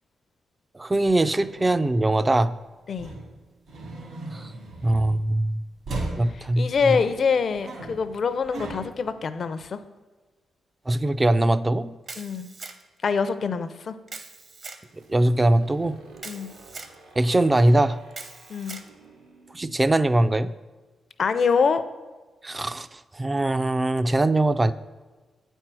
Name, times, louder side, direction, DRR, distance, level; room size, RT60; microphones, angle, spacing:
voice 1, 0.7-2.5 4.3-4.5 4.8-5.6 6.2-7.0 10.9-11.9 15.1-16.0 17.2-18.0 19.5-20.5 22.4-24.7, right 1 dB, 20° right, 14 dB, 0.4 m, -22 dB
sound 1, 1.0-2.4 3.0-5.4 5.9-9.1, right 2 dB, 70° right, 2.1 m, -37 dB
voice 2, 6.3-9.8 12.2-12.5 13.0-13.9 16.2-16.5 18.5-18.8 21.2-21.8, left 5 dB, 55° left, 12 dB, 0.5 m, -25 dB
Camera, 12.1-13.0 14.1-14.8 16.2-16.9 18.1-18.9, right 3 dB, 45° right, 0.8 m, -41 dB
sound 2, 14.8-20.5, right 3 dB, 90° right, 1.5 m, -51 dB
8.4 x 4.5 x 6.1 m, 1.3 s
cardioid pair, 85°, 0 cm